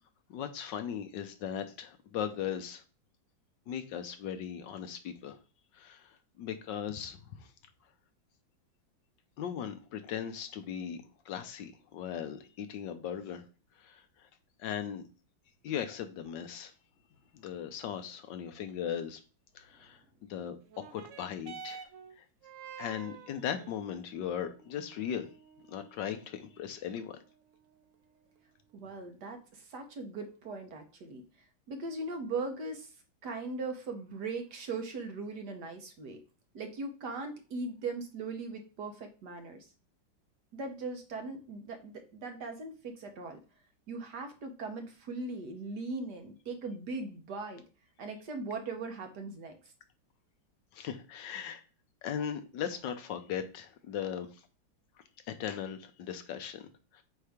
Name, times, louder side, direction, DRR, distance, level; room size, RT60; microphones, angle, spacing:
voice 1, 0.3-2.8 3.7-5.4 5.7-7.2 9.4-13.4 13.8-14.0 14.6-15.0 15.6-16.7 17.3-19.2 19.5-21.8 22.2-22.3 22.8-25.3 25.7-27.2 50.7-51.6 52.0-54.3 55.3-57.0, left 9 dB, 75° left, 9 dB, 1.3 m, -38 dB
sound 1, 20.7-29.6 30.5-30.6, right 6 dB, 85° right, 0.6 m, -51 dB
voice 2, 28.7-31.2 31.7-32.9 33.2-36.2 36.5-39.6 40.5-43.4 43.9-47.6 48.0-49.5, right 3 dB, 65° right, 5 dB, 1.5 m, -39 dB
7.9 x 2.8 x 4.9 m, 0.35 s
omnidirectional pair, 2.1 m